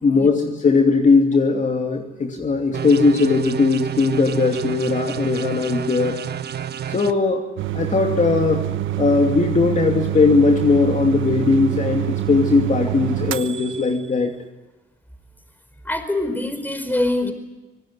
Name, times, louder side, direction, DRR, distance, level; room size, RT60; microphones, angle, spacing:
voice 1, 0.0-6.2 6.9-7.5 7.7-8.7 9.0-14.3, left 4 dB, 40° left, 3 dB, 2.8 m, -19 dB
sound 1, 2.7-7.1, right 9 dB, 55° right, 1.2 m, -29 dB
sound 2, 7.6-14.1, right 13 dB, 80° right, 1.1 m, -26 dB
voice 2, 15.8-17.3, left 1 dB, 10° left, 9 dB, 4.9 m, -24 dB
25.5 x 19.5 x 9.8 m, 1.1 s
cardioid pair, 90°, 20 cm